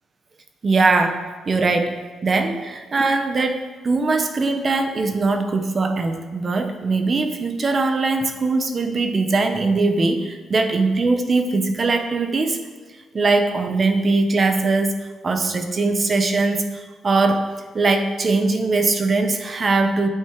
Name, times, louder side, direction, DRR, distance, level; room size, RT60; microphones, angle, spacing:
voice 1, 0.6-12.6 13.1-15.0 15.2-17.5 17.7-20.1, right 3 dB, 40° right, 7 dB, 1.0 m, -21 dB
9.1 x 8.2 x 4.9 m, 1.3 s
cardioid pair, 90°, 0 cm